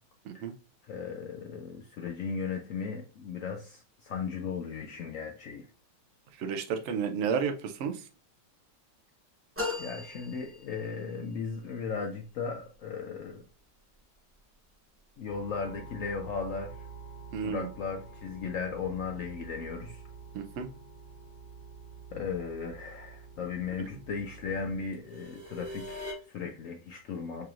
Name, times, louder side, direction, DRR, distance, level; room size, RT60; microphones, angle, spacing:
voice 1, 0.8-5.7 9.8-13.5 15.2-16.9 17.4-20.0 22.1-27.5, left 5 dB, 75° left, 0.7 m, -36 dB
voice 2, 6.4-8.0 17.3-17.7 20.3-20.7, right 6 dB, 80° right, 0.6 m, -32 dB
sound 1, 9.6-11.2, left 3 dB, 15° right, 0.4 m, -37 dB
sound 2, 15.3-26.1, right 2 dB, 35° right, 1.2 m, -46 dB
4.8 x 3.0 x 2.4 m
omnidirectional pair, 1.9 m